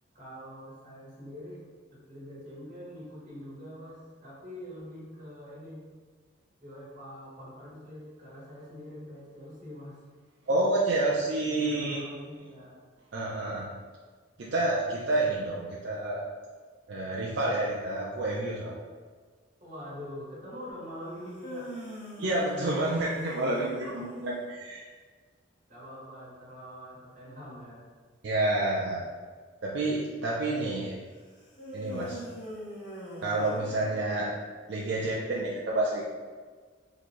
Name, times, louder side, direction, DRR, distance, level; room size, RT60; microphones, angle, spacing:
voice 1, 0.1-1.7 1.9-5.8 6.6-10.0 11.5-12.8 19.6-21.7 23.5-24.1 25.7-27.9, equal, 40° right, -7 dB, 1.4 m, -44 dB
voice 2, 10.5-12.0 13.1-13.7 14.4-16.2 16.9-18.8 22.2-24.8 28.2-29.0 29.6-30.9 31.7-32.2 33.2-34.3 34.7-36.0, right 2 dB, 65° right, -5 dB, 0.4 m, -29 dB
sound 1, 21.2-24.4 31.6-34.5, equal, 80° left, 1.3 m, -42 dB
3.7 x 2.6 x 3.0 m, 1.5 s
head